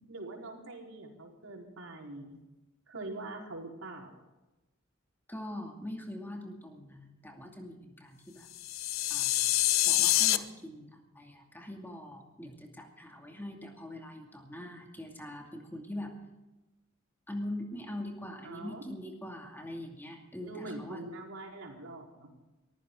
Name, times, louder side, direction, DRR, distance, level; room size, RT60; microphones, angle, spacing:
voice 1, 0.0-2.4 2.9-4.2 18.4-18.9 20.4-22.3, right 2 dB, 85° right, -1 dB, 4.4 m, -43 dB
voice 2, 5.3-8.5 9.1-9.6 9.9-16.1 17.3-21.0, left 1 dB, 10° left, 1 dB, 2.4 m, -43 dB
sound 1, 8.5-10.4, left 14 dB, 80° left, 0.8 m, -26 dB
23.0 x 15.0 x 3.9 m, 1.1 s
head